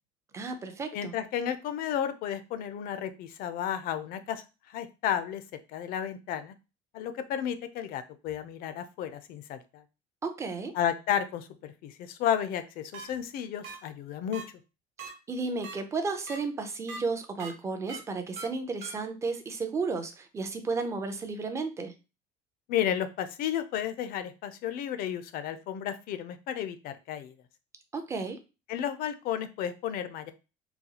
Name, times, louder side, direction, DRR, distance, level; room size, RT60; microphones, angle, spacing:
voice 1, 0.3-1.2 10.2-10.7 15.0-21.9 27.9-28.4, right 4 dB, 15° right, 7 dB, 0.4 m, -33 dB
voice 2, 0.9-5.4 5.7-6.5 6.9-9.8 10.7-14.4 22.7-27.3 28.7-30.3, left 9 dB, 50° left, 10 dB, 0.4 m, -32 dB
sound 1, 12.9-13.1 13.6-13.8 14.3-14.4 15.0-15.1 15.6-15.7 16.3-16.4 16.9-17.0 17.4-17.5 17.9-18.0 18.4-18.5 18.8-18.9, right 4 dB, 65° right, 1.1 m, -40 dB
4.0 x 2.3 x 2.8 m, 0.29 s
cardioid pair, 155°, 19 cm